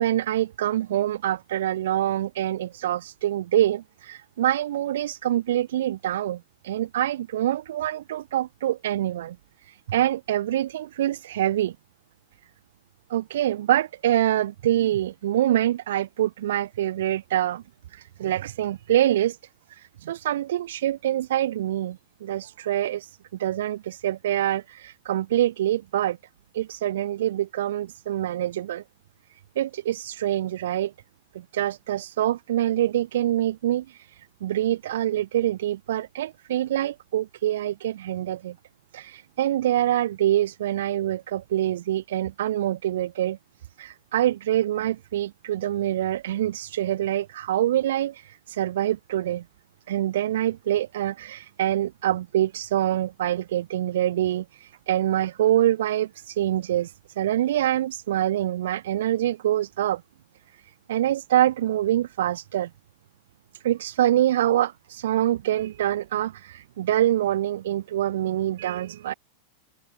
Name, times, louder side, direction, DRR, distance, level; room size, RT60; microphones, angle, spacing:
voice 1, 0.0-9.4 9.6-11.8 13.1-17.6 17.9-19.4 19.7-26.2 26.5-28.8 29.6-30.9 31.3-38.6 38.9-43.4 43.8-49.4 49.9-60.0 60.9-62.7 63.6-69.1, right 12 dB, 60° right, 5.9 m, -25 dB
figure-of-eight pair, 90°, 0 cm